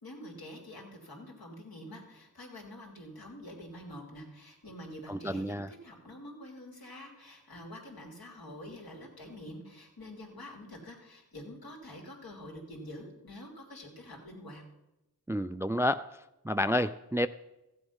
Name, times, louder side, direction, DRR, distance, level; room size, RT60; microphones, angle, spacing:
voice 1, 0.0-14.6, left 1 dB, 70° left, -1 dB, 3.0 m, -47 dB
voice 2, 5.1-5.7 15.3-16.1 16.4-17.3, left 1 dB, 10° right, 13 dB, 0.3 m, -29 dB
14.5 x 7.9 x 5.6 m, 0.93 s
cardioid pair, 50°, 37 cm